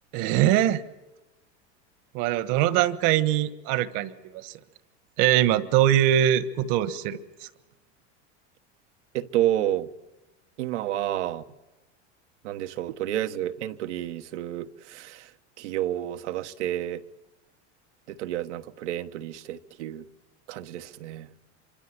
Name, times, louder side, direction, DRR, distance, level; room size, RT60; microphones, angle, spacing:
voice 1, 0.1-0.8 2.1-4.5 5.2-7.5, right 12 dB, 60° right, 1.5 m, -23 dB
voice 2, 9.1-9.9 10.6-11.4 12.4-15.2 15.6-17.0 18.2-20.0 20.5-21.3, right 12 dB, 85° right, 1.3 m, -30 dB
26.5 x 24.5 x 7.7 m
supercardioid pair, 110°, 35 cm